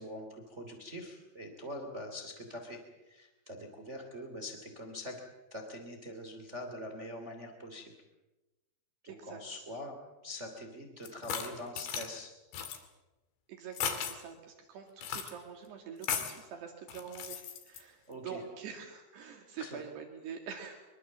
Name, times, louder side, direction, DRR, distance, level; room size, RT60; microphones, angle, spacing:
voice 1, 0.0-2.8 3.1-5.2 5.5-7.9 9.0-12.3 18.1-18.4 19.6-19.8, left 1 dB, 20° right, 4 dB, 2.7 m, -44 dB
voice 2, 9.1-9.6 13.5-20.9, right 7 dB, 70° right, 3 dB, 4.3 m, -45 dB
sound 1, 11.1-12.1 12.5-12.8 13.7-14.2 15.0-15.3 16.0-16.4 16.9-17.8, left 8 dB, 80° left, 4.6 m, -36 dB
24.5 x 23.5 x 7.5 m, 1.1 s
omnidirectional pair, 5.0 m